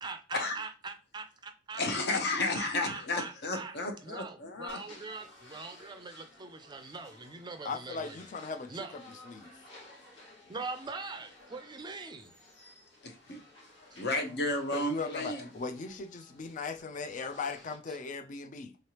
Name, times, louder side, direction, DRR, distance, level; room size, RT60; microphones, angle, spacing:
voice 1, 0.0-1.8 2.5-3.8 4.0-8.2 8.7-9.0 10.5-12.3 13.9-14.0, right 4 dB, 25° right, 0.4 m, -42 dB
voice 2, 1.7-4.8 13.0-13.4 14.0-15.5, left 2 dB, 55° left, 0.8 m, -32 dB
sound 1, 4.7-17.8, left 1 dB, 85° left, 1.9 m, -55 dB
voice 3, 7.6-9.5 14.7-18.8, left 4 dB, 40° left, 0.4 m, -38 dB
3.8 x 3.3 x 2.9 m
head